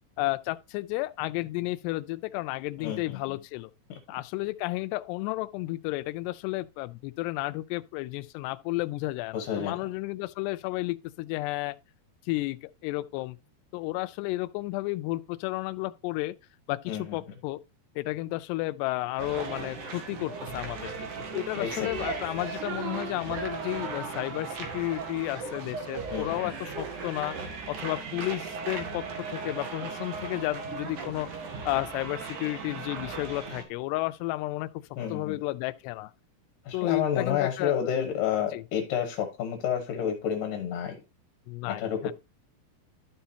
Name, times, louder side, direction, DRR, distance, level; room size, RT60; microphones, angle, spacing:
voice 1, 0.2-3.7 4.1-11.8 12.3-13.4 13.7-16.3 16.7-17.6 18.0-27.4 27.7-31.3 31.7-34.7 35.1-36.1 36.7-38.1 38.5-38.6 41.5-42.1, left 19 dB, 90° left, 2.7 m, -32 dB
voice 2, 2.8-3.4 3.9-4.0 9.3-9.8 16.9-17.2 21.6-21.9 26.1-26.5 35.0-35.4 36.6-41.0 41.7-42.1, left 8 dB, 65° left, 2.5 m, -30 dB
sound 1, 19.2-33.6, right 4 dB, 55° right, 2.7 m, -37 dB
12.5 x 5.7 x 2.7 m
omnidirectional pair, 4.7 m